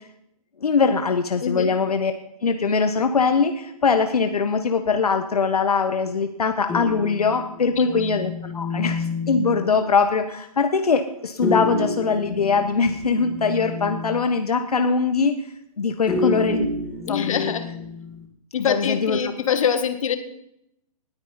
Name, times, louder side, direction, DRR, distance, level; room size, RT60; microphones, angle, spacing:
voice 1, 0.6-2.1 2.4-15.4 15.8-16.7 17.1-17.5 18.6-19.3, left 5 dB, 80° left, 7 dB, 1.2 m, -22 dB
sound 1, 6.7-9.8 11.4-14.4 16.1-18.3, left 2 dB, 5° left, 2.5 m, -29 dB
voice 2, 7.8-8.1 16.0-16.3 17.1-17.7 18.5-20.2, left 8 dB, 60° left, 9 dB, 1.8 m, -25 dB
19.5 x 9.5 x 4.3 m, 0.77 s
hypercardioid pair, 135°, 19 cm